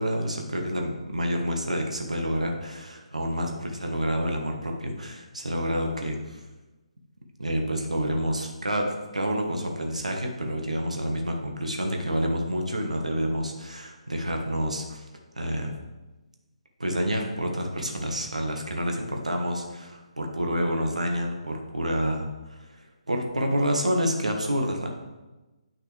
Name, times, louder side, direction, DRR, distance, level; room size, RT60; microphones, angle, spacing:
voice 1, 0.0-6.4 7.4-15.0 15.3-15.7 16.8-24.9, equal, 85° right, 2 dB, 1.3 m, -28 dB
8.4 x 6.3 x 3.3 m, 1.1 s
figure-of-eight pair, 140°, 4 cm